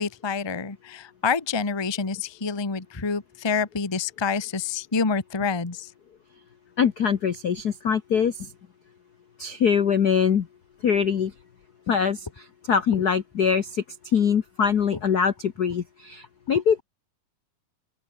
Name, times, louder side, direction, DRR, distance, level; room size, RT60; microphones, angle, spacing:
voice 1, 0.0-5.9, left 5 dB, 30° left, 0.5 m, -27 dB
voice 2, 6.8-8.3 9.4-10.5 10.8-11.3 11.9-13.8 14.1-16.8, left 7 dB, 70° left, 0.9 m, -23 dB
open air
omnidirectional pair, 3.4 m